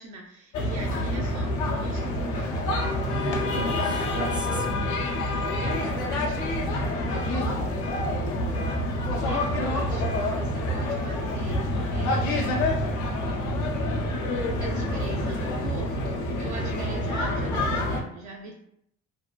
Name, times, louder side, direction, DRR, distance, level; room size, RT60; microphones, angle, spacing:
voice 1, 0.0-2.7 4.8-5.0 5.6-8.3 8.7-12.7 14.6-18.5, right 3 dB, 70° right, 0.5 m, -42 dB
sound 1, 0.5-18.0, left 1 dB, 90° left, 0.6 m, -27 dB
sound 2, 2.7-3.0 3.4-3.7 4.1-4.4 4.9-5.1 5.6-5.9 6.3-6.6 7.1-7.3 7.8-8.1 8.5-8.8 9.3-9.5 10.0-10.3, left 4 dB, 45° left, 0.6 m, -39 dB
voice 2, 3.0-5.3, right 3 dB, 15° right, 0.3 m, -35 dB
2.7 x 2.3 x 2.2 m
cardioid pair, 90°, 30 cm